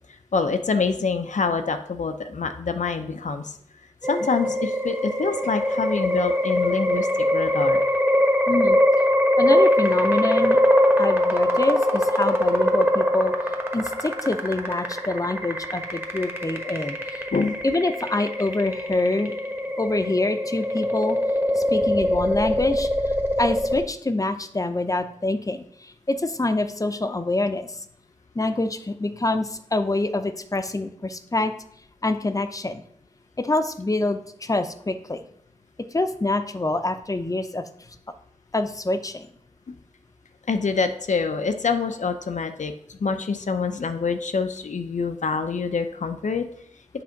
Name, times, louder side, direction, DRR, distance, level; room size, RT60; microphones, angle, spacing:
voice 1, 0.3-3.6 4.0-7.8 17.3-17.6 39.7-39.8 40.5-46.5, left 4 dB, 75° left, 8 dB, 0.6 m, -26 dB
sound 1, 4.0-23.9, left 1 dB, 20° right, 1.1 m, -22 dB
voice 2, 8.5-8.8 9.4-10.6 11.0-13.3 13.7-17.0 17.6-19.3 19.8-21.2 21.6-22.9 23.4-27.7 28.3-31.5 32.0-32.8 33.4-35.2 35.9-37.6 38.5-39.3, left 2 dB, 25° left, 9 dB, 0.6 m, -25 dB
7.8 x 3.4 x 5.1 m, 0.65 s
wide cardioid pair, 60°, 13 cm